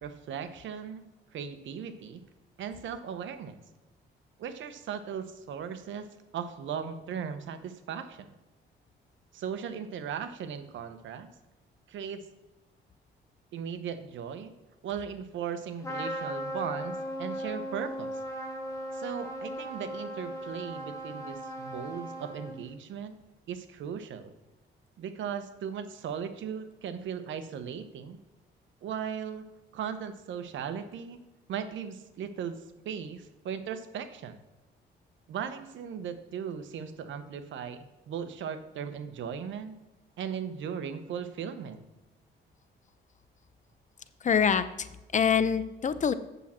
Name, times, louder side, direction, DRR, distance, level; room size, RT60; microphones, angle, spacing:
voice 1, 0.0-1.0 1.3-2.2 2.6-3.6 4.4-8.3 9.3-11.3 11.9-12.2 13.5-14.5 14.8-18.2 18.9-23.1 23.5-24.3 25.0-28.2 28.8-29.5 29.7-31.2 31.5-34.4 35.3-39.8 40.2-41.8, right 7 dB, 70° right, 10 dB, 0.9 m, -37 dB
Trumpet, 15.8-22.7, equal, 15° left, 2.9 m, -37 dB
voice 2, 44.2-46.1, left 7 dB, 40° left, 13 dB, 0.6 m, -25 dB
8.3 x 7.4 x 4.3 m, 1.0 s
cardioid pair, 90°, 20 cm